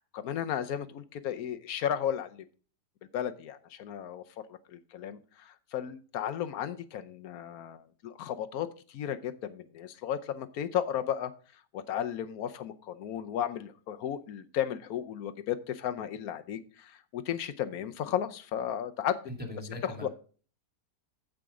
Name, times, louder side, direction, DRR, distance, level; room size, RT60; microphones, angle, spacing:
voice 1, 0.1-2.4 3.1-4.2 4.7-11.3 11.7-19.2 19.8-20.1, left 10 dB, 65° left, 10 dB, 1.1 m, -34 dB
voice 2, 19.3-20.1, left 1 dB, 5° right, 1 dB, 2.2 m, -40 dB
14.5 x 5.1 x 3.7 m, 0.40 s
omnidirectional pair, 1.8 m